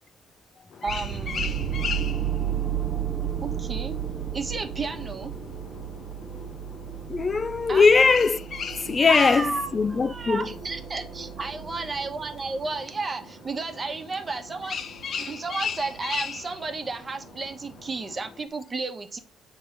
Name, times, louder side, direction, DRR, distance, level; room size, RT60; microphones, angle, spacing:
sound 1, 0.7-18.4, left 6 dB, 50° left, 0.8 m, -39 dB
voice 1, 0.8-1.6 3.4-4.0 4.3-5.3 7.7-7.9 9.0-14.8 15.2-19.2, right 3 dB, 30° right, 1.1 m, -32 dB
sound 2, 0.8-18.3, right 7 dB, 70° right, 0.9 m, -48 dB
sound 3, 0.9-12.8, right 10 dB, 45° right, 0.8 m, -33 dB
voice 2, 7.1-8.4 8.8-10.5, left 4 dB, 30° left, 0.3 m, -20 dB
7.6 x 3.6 x 5.8 m
cardioid pair, 105°, 0 cm